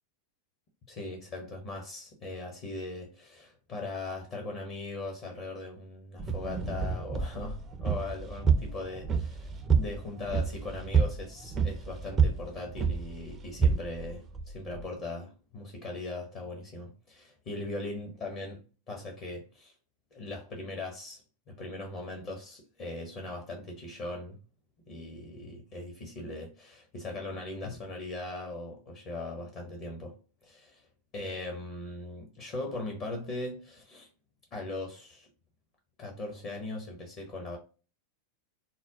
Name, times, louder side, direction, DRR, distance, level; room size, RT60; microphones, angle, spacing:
voice 1, 0.9-18.6 18.9-19.7 20.1-24.4 24.9-30.1 30.4-30.8 31.1-34.1 34.5-35.3 36.0-37.6, left 2 dB, 35° left, 1.0 m, -39 dB
sound 1, 6.2-14.9, right 6 dB, 25° right, 0.5 m, -29 dB
4.2 x 2.2 x 3.7 m
figure-of-eight pair, 90°, 0 cm